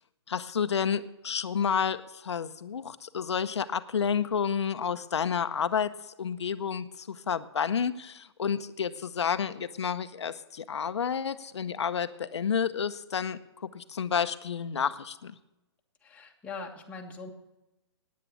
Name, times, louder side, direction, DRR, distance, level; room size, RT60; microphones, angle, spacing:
voice 1, 0.3-5.9 6.2-15.3, left 7 dB, 90° left, 11 dB, 0.7 m, -30 dB
voice 2, 16.0-17.3, left 4 dB, 10° left, 0 dB, 1.4 m, -41 dB
9.4 x 9.3 x 8.6 m, 0.98 s
hypercardioid pair, 150°, 14 cm